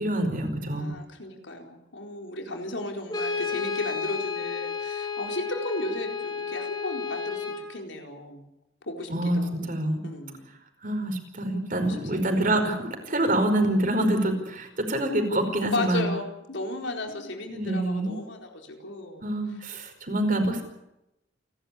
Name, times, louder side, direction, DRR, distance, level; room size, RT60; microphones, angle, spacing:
voice 1, 0.0-0.9 9.1-9.4 9.7-10.0 10.8-16.1 17.5-18.1 19.2-20.6, right 1 dB, 50° right, 5 dB, 5.0 m, -26 dB
voice 2, 0.7-8.4 8.8-9.8 10.0-10.5 11.8-12.3 15.6-19.3, left 1 dB, 85° left, 2 dB, 4.4 m, -35 dB
Brass instrument, 3.1-7.7, left 5 dB, 25° left, 6.4 m, -32 dB
29.5 x 12.5 x 8.7 m, 0.89 s
head